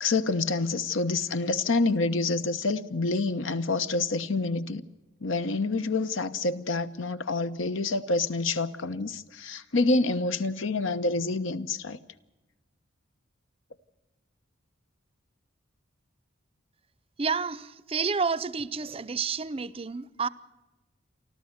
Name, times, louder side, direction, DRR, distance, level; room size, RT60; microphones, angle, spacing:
voice 1, 0.0-4.8 5.2-12.0, left 3 dB, 75° left, 1.0 m, -27 dB
voice 2, 17.2-20.3, right 5 dB, 30° right, 0.6 m, -30 dB
28.5 x 12.5 x 8.0 m
head